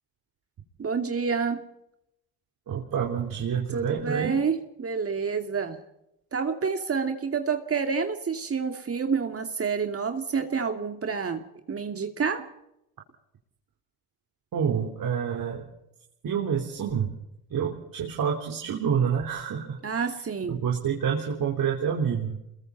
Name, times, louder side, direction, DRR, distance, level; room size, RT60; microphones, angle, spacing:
voice 1, 0.8-1.6 3.7-5.8 6.3-11.4 11.7-12.5 19.8-20.6, right 5 dB, 35° right, 5 dB, 2.6 m, -28 dB
voice 2, 2.7-4.3 14.5-15.6 16.2-17.1 17.5-20.0 20.5-22.3, right 7 dB, 55° right, 0 dB, 3.9 m, -28 dB
28.0 x 22.0 x 4.2 m, 0.83 s
supercardioid pair, 75°, 39 cm